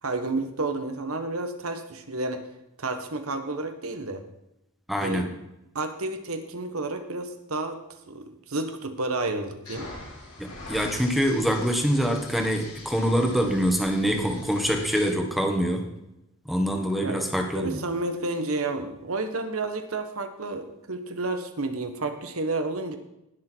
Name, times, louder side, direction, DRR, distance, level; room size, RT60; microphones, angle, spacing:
voice 1, 0.0-2.4 2.8-4.2 5.0-5.3 5.7-9.9 17.0-17.2 17.5-23.0, right 2 dB, 70° right, 8 dB, 1.4 m, -31 dB
voice 2, 4.9-5.3 10.4-15.9 16.4-17.8, equal, ahead, 3 dB, 1.7 m, -25 dB
sound 1, 9.6-15.1, left 2 dB, 85° left, 5.6 m, -43 dB
19.0 x 6.6 x 4.6 m, 0.88 s
head